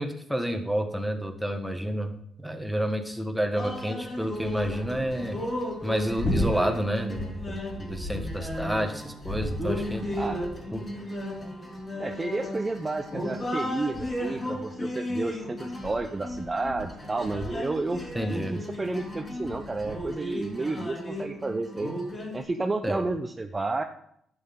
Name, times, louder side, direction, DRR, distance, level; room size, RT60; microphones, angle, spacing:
voice 1, 0.0-2.1 2.4-5.4 5.8-10.1 10.7-10.9 18.1-18.6 22.8-23.0, equal, ahead, 4 dB, 1.5 m, -29 dB
sound 1, 3.5-22.4, left 1 dB, 30° left, 4.0 m, -34 dB
voice 2, 12.0-18.0 18.3-21.9 22.3-23.8, right 3 dB, 25° right, 5 dB, 0.7 m, -31 dB
11.0 x 7.9 x 3.8 m, 0.71 s
cardioid pair, 90°, 0 cm